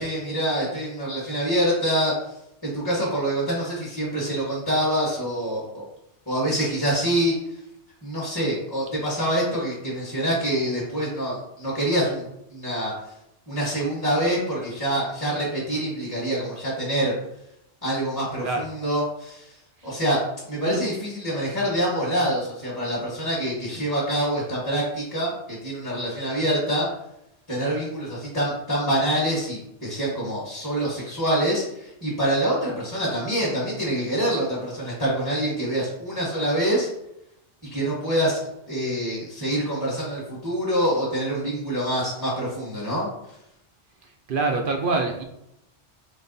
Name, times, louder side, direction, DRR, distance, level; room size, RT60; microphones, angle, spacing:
voice 1, 0.0-2.1 2.6-5.8 6.3-7.4 8.0-12.9 13.5-17.1 17.8-19.5 19.8-26.9 27.5-36.9 37.7-43.1, right 1 dB, 15° left, -7 dB, 1.1 m, -26 dB
voice 2, 44.3-45.2, right 3 dB, 60° right, 3 dB, 0.6 m, -25 dB
4.0 x 3.2 x 3.9 m, 0.83 s
omnidirectional pair, 1.2 m